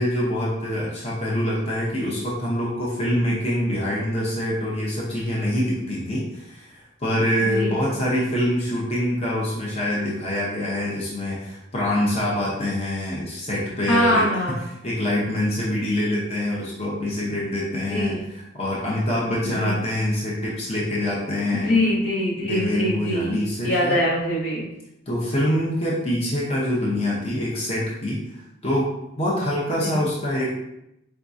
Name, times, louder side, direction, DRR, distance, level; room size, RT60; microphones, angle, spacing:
voice 1, 0.0-14.3 14.7-21.7 22.4-24.0 25.1-30.5, left 1 dB, 30° left, -5 dB, 0.8 m, -25 dB
voice 2, 13.9-14.6 17.9-18.2 19.4-19.8 21.5-23.4 23.6-24.6 29.8-30.0, left 1 dB, 75° left, -3 dB, 1.3 m, -23 dB
4.6 x 3.7 x 2.7 m, 0.85 s
head